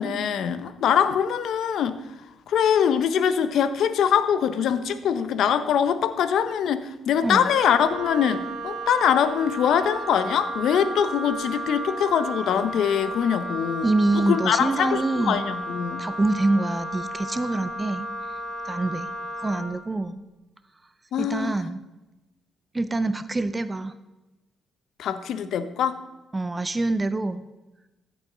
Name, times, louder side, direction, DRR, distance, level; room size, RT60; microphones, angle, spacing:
voice 1, 0.0-2.0 2.5-16.1 21.1-21.6 25.0-26.0, left 8 dB, 75° left, 12 dB, 0.6 m, -23 dB
Wind instrument woodwind instrument, 7.2-19.7, right 1 dB, 60° right, 1.9 m, -33 dB
voice 2, 13.8-15.5 16.0-18.1 18.7-19.1 19.4-20.2 21.2-21.8 22.7-23.9 26.3-27.4, right 2 dB, 20° right, 12 dB, 0.4 m, -25 dB
14.0 x 6.3 x 3.8 m, 1.1 s
cardioid pair, 90°, 0 cm